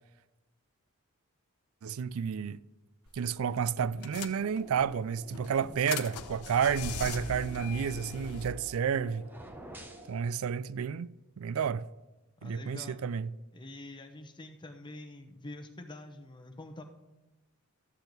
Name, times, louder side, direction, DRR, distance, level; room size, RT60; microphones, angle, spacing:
voice 1, 1.8-2.6 3.1-9.3 10.1-11.1 11.4-11.9 12.4-13.3, right 7 dB, 70° right, 0.4 m, -31 dB
sound 1, 3.1-3.3 3.6-3.7 4.0-4.8 5.3-8.5, left 5 dB, 90° left, 0.8 m, -40 dB
sound 2, 4.0-10.2, right 1 dB, 30° right, 1.5 m, -52 dB
sound 3, 9.2-10.1, right 1 dB, 10° right, 0.7 m, -48 dB
voice 2, 12.4-13.0 13.5-16.8, left 2 dB, 20° left, 0.9 m, -46 dB
13.5 x 4.5 x 8.0 m
head